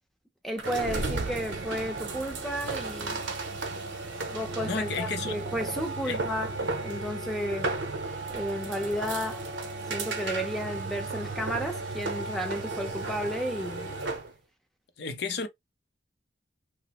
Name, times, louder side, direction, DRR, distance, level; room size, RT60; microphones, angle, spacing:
voice 1, 0.4-3.2 4.3-6.5 6.8-7.7 8.3-9.4 9.9-13.9, equal, ahead, 0.6 m, -33 dB
sound 1, 0.6-14.3, right 3 dB, 60° right, 0.7 m, -34 dB
voice 2, 4.6-5.4 6.0-6.2 15.0-15.5, left 4 dB, 55° left, 0.5 m, -32 dB
3.0 x 2.0 x 2.8 m
head